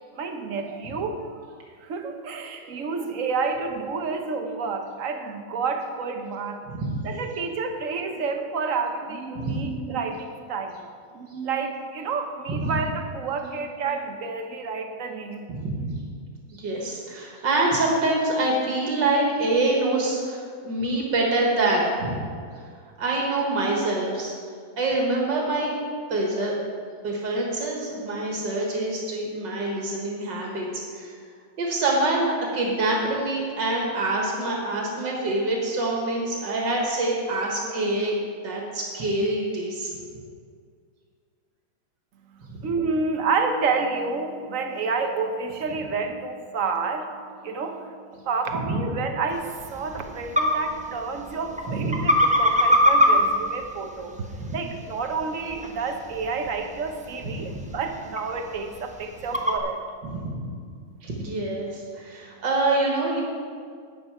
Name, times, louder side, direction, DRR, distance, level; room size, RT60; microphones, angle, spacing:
voice 1, 0.1-1.3 1.8-6.6 7.0-10.8 11.1-15.4 42.6-47.1 47.4-47.9 48.3-54.1 54.5-59.8, right 4 dB, 50° right, 5 dB, 1.2 m, -29 dB
voice 2, 15.5-15.9 16.5-22.2 23.0-24.3 24.8-25.7 26.1-26.5 27.0-31.2 31.6-39.9 48.7-48.8 51.7-52.1 54.4-54.6 57.2-57.6 60.0-60.4 61.0-63.2, right 2 dB, 75° right, -1 dB, 2.2 m, -25 dB
sound 1, 49.3-59.6, equal, 5° right, 0.5 m, -26 dB
12.0 x 9.0 x 4.7 m, 2.1 s
omnidirectional pair, 1.9 m